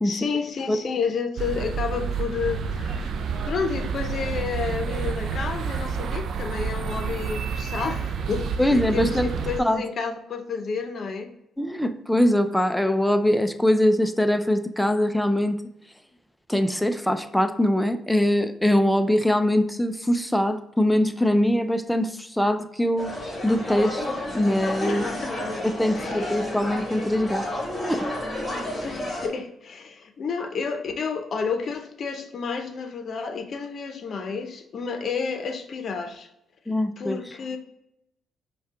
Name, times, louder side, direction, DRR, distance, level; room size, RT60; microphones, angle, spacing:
voice 1, 0.0-3.1 3.5-11.3 24.9-25.5 25.9-26.3 28.8-36.3 37.0-37.6, left 5 dB, 55° left, 6 dB, 0.7 m, -31 dB
sound 1, 1.4-9.6, right 5 dB, 65° right, 0.4 m, -29 dB
voice 2, 8.6-9.3 9.6-9.8 11.6-15.6 16.5-23.1 23.4-24.1 24.3-25.0 25.6-27.4 27.8-28.1 36.7-37.2, left 1 dB, 5° left, 8 dB, 0.4 m, -22 dB
sound 2, 23.0-29.3, left 1 dB, 20° left, 1.4 m, -31 dB
5.4 x 2.3 x 3.6 m, 0.81 s
cardioid pair, 90°, 0 cm